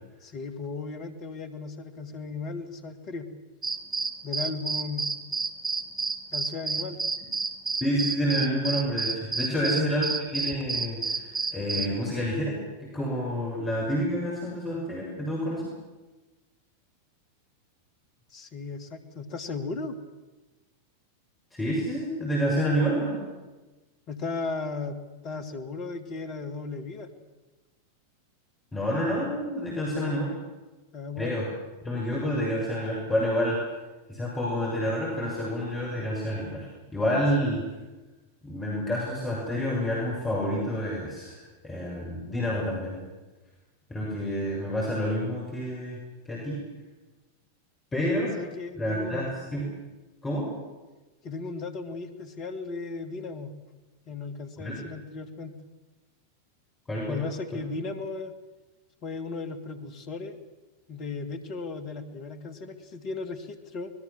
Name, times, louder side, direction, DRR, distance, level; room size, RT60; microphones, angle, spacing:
voice 1, 0.2-3.3 4.2-5.1 6.3-7.0 9.5-10.0 18.3-20.0 24.1-25.0 25.2-27.1 30.9-31.4 37.4-37.6 48.4-49.3 51.2-53.5 54.1-55.6 57.1-58.3 59.0-60.4 60.9-63.9, left 4 dB, 35° left, 10 dB, 2.7 m, -36 dB
sound 1, 3.6-11.9, right 4 dB, 20° right, 1.9 m, -30 dB
voice 2, 7.8-15.7 21.5-23.2 28.7-30.3 31.2-31.5 31.8-33.6 34.1-37.6 38.4-43.0 43.9-46.0 46.3-46.6 47.9-48.4 48.8-49.6 50.2-50.5 54.6-54.8 56.9-57.2, equal, 15° left, -3 dB, 6.9 m, -28 dB
25.5 x 20.5 x 7.5 m, 1.2 s
figure-of-eight pair, 90°, 0 cm